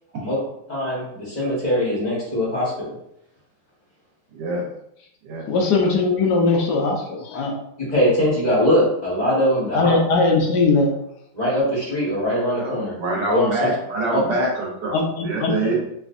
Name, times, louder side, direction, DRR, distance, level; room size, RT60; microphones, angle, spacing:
voice 1, 0.7-2.7 7.8-9.9 11.3-12.9 13.3-13.7 14.1-14.2, equal, 25° left, -7 dB, 1.2 m, -21 dB
voice 2, 4.3-4.6 5.2-5.4 12.6-14.9 15.2-15.7, right 2 dB, 65° right, -3 dB, 1.5 m, -25 dB
voice 3, 5.5-7.6 9.7-10.9 14.9-15.7, left 3 dB, 70° left, 1 dB, 1.1 m, -20 dB
3.3 x 3.1 x 2.5 m, 0.77 s
omnidirectional pair, 2.1 m